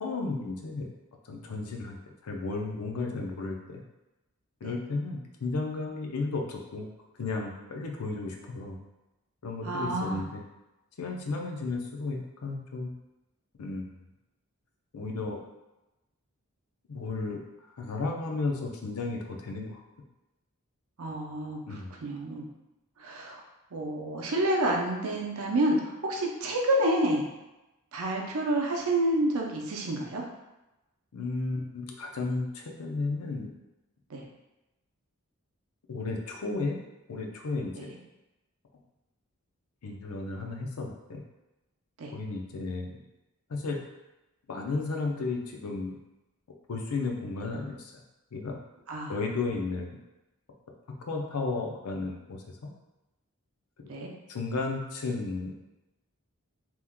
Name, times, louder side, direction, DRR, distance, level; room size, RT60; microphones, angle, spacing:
voice 1, 0.0-0.9 1.2-2.0 2.2-3.8 4.6-6.9 7.2-8.8 9.4-10.4 11.0-12.9 13.6-13.8 14.9-15.4 16.9-17.4 17.8-19.8 21.7-21.9 31.1-33.5 35.9-36.8 37.1-38.0 39.8-41.2 42.1-42.9 43.5-43.8 44.5-46.0 46.7-47.9 48.3-48.6 49.1-49.9 51.1-52.4 53.8-53.9 54.3-55.5, left 3 dB, 85° left, 1 dB, 0.5 m, -33 dB
voice 2, 9.6-10.2 21.0-21.6 22.0-22.5 23.0-23.4 23.7-27.3 27.9-30.2 34.1-34.2 42.0-42.1 48.9-49.1 53.9-54.1, right 1 dB, 80° right, 1 dB, 0.6 m, -28 dB
2.9 x 2.2 x 3.5 m, 1.0 s
head